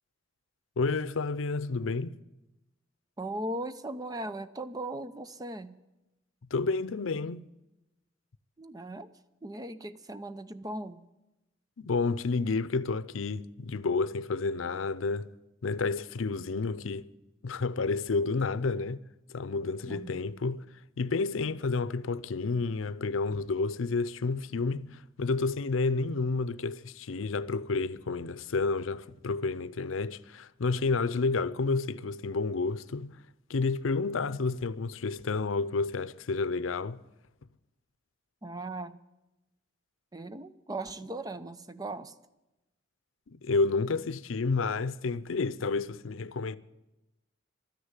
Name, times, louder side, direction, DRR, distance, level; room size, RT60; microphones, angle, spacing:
voice 1, 0.8-2.1 6.5-7.4 11.8-15.3 15.6-17.1 17.4-19.0 19.3-20.6 21.0-33.1 33.5-37.0 43.3-46.6, left 4 dB, 85° left, 0.6 m, -30 dB
voice 2, 3.2-5.8 8.6-9.1 9.4-11.0 19.9-20.2 38.4-39.0 40.1-42.1, right 1 dB, 20° right, 0.6 m, -38 dB
13.0 x 10.0 x 9.7 m
head